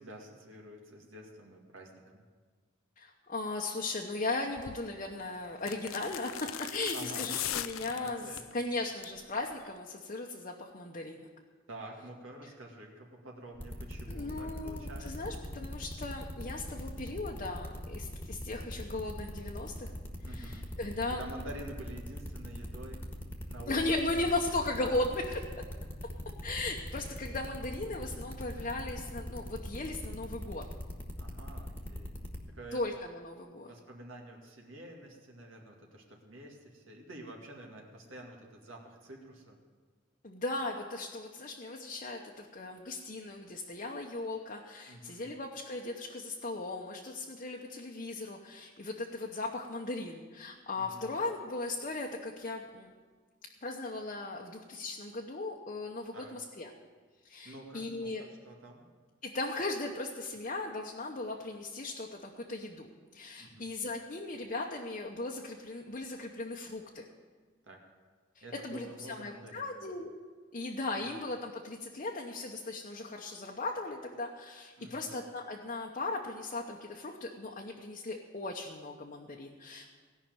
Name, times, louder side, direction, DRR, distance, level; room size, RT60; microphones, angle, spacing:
voice 1, 0.0-2.2 6.9-7.3 8.0-8.4 11.7-15.3 20.2-20.8 21.1-23.1 23.5-23.9 24.2-24.3 31.2-32.1 32.5-32.8 33.6-39.6 44.9-45.3 50.8-51.1 56.1-56.4 57.4-58.8 63.4-63.7 67.6-67.8 68.4-69.7 74.8-75.1, right 1 dB, 75° right, 0 dB, 2.1 m, -48 dB
voice 2, 3.0-11.3 14.1-19.9 20.2-21.2 23.7-25.4 26.4-30.6 32.7-33.7 40.2-52.9 53.6-56.7 57.2-58.2 59.2-67.1 68.3-70.1 70.5-79.9, left 2 dB, 40° left, 0 dB, 0.9 m, -37 dB
sound 1, 4.6-4.8 5.6-8.5 8.9-9.2 9.5-9.6, left 11 dB, 90° left, 0.5 m, -38 dB
sound 2, 13.6-32.4, left 1 dB, 10° left, 1.5 m, -41 dB
17.5 x 5.8 x 9.0 m, 1.5 s
head